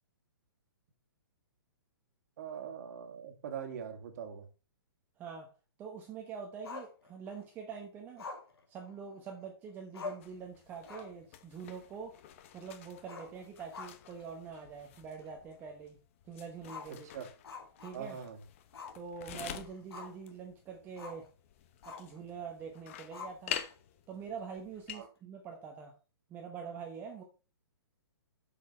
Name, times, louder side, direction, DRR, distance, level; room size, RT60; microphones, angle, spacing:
voice 1, 2.4-4.5 16.9-17.3 17.9-18.4 24.9-25.1, right 8 dB, 40° right, 6 dB, 1.9 m, -42 dB
voice 2, 5.2-5.5 5.8-8.3 8.7-12.1 12.5-16.0 16.2-17.1 17.8-18.2 18.9-21.3 21.9-23.6 24.1-25.9 26.3-27.2, right 6 dB, 15° right, 1 dB, 1.1 m, -45 dB
Growling, 6.6-7.5 8.2-9.4 9.7-9.8 9.9-10.4 10.8-11.2 11.6-11.7 13.0-14.2 14.6-14.7 15.2-15.3 16.6-18.3 18.7-19.0 19.4-20.3 21.0-21.3 21.8-22.2 23.1-23.7, left 4 dB, 85° left, 3.0 m, -46 dB
sound 1, 10.2-25.1, left 10 dB, 30° left, 0.8 m, -48 dB
8.3 x 7.0 x 4.5 m, 0.32 s
hypercardioid pair, 165°, 13 cm